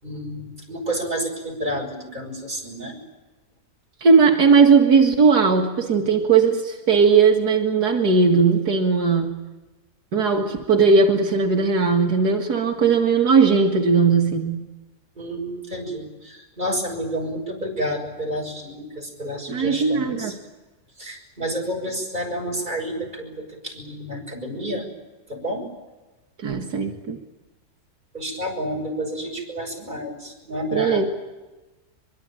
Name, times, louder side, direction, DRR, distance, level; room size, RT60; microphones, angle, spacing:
voice 1, 0.0-2.9 15.2-20.3 21.0-24.8 25.3-25.6 28.1-31.1, equal, 25° right, 1 dB, 6.4 m, -30 dB
voice 2, 4.0-9.3 10.1-14.6 19.5-20.3 26.4-27.2 30.7-31.1, right 5 dB, 80° right, 2 dB, 2.4 m, -18 dB
23.5 x 23.0 x 9.0 m, 1.1 s
omnidirectional pair, 1.7 m